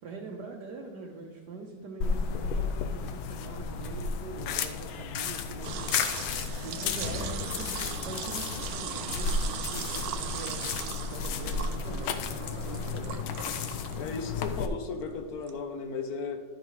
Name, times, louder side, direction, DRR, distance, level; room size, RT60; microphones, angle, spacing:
voice 1, 0.0-6.1 6.6-12.2 12.6-13.2, right 3 dB, 65° right, 0 dB, 1.2 m, -43 dB
sound 1, 2.0-14.7, left 5 dB, 80° left, 1.4 m, -33 dB
sound 2, 5.6-15.6, right 9 dB, 80° right, 0.8 m, -39 dB
voice 2, 14.0-16.4, left 4 dB, 60° left, 7 dB, 1.0 m, -35 dB
11.5 x 9.1 x 3.2 m, 1.4 s
omnidirectional pair, 2.2 m